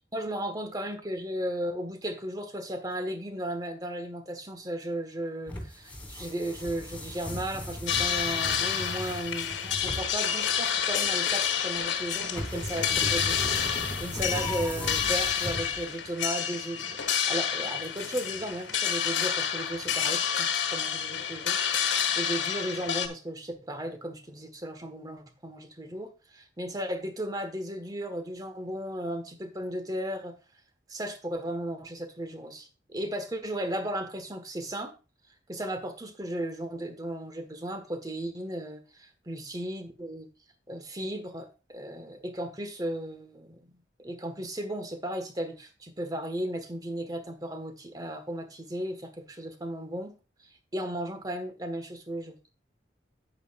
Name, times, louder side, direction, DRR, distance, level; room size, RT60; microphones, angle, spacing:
voice 1, 0.1-30.3 30.9-34.9 35.5-40.3 40.7-43.7 44.0-50.2 50.7-52.3, right 1 dB, 20° right, 8 dB, 1.5 m, -35 dB
sound 1, 5.5-16.1, left 1 dB, 10° left, 2.7 m, -37 dB
sound 2, 7.9-23.1, left 8 dB, 85° left, 1.7 m, -29 dB
10.5 x 8.7 x 2.5 m, 0.31 s
head